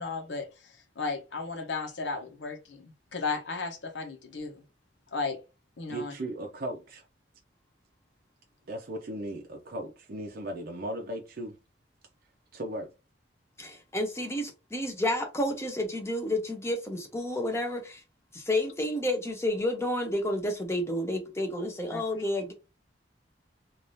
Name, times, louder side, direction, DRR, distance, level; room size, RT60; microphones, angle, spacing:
voice 1, 0.0-4.6 5.1-5.4 5.8-6.1 21.9-22.0, left 4 dB, 90° left, 0.9 m, -35 dB
voice 2, 5.9-7.0 8.7-11.6 12.5-12.9, right 1 dB, 55° right, 0.6 m, -37 dB
voice 3, 13.6-18.0 18.3-22.5, left 1 dB, 15° left, 0.8 m, -30 dB
3.4 x 2.5 x 2.7 m
head